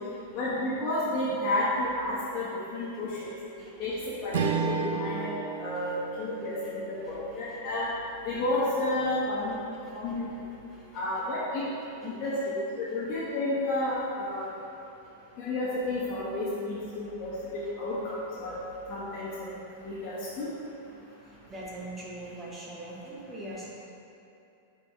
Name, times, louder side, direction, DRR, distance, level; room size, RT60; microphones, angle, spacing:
voice 1, 0.3-3.3 3.8-3.9 4.2-5.3 5.6-7.9 8.2-9.6 9.9-10.3 10.9-11.6 12.0-14.5 15.4-18.5 18.9-19.5 19.8-20.5, left 1 dB, 30° left, -11 dB, 1.3 m, -31 dB
voice 2, 3.6-4.4 4.8-5.0 5.7-5.9 6.4-7.6 9.8-10.2 10.7-11.0 12.0-12.4 12.9-13.0 14.4-14.5 17.6-17.7 19.1-19.2 21.1-23.7, right 1 dB, 10° right, -5 dB, 1.0 m, -45 dB
Strum, 4.3-8.9, right 6 dB, 80° right, 0.5 m, -34 dB
6.9 x 4.5 x 3.3 m, 2.8 s
supercardioid pair, 160°, 0 cm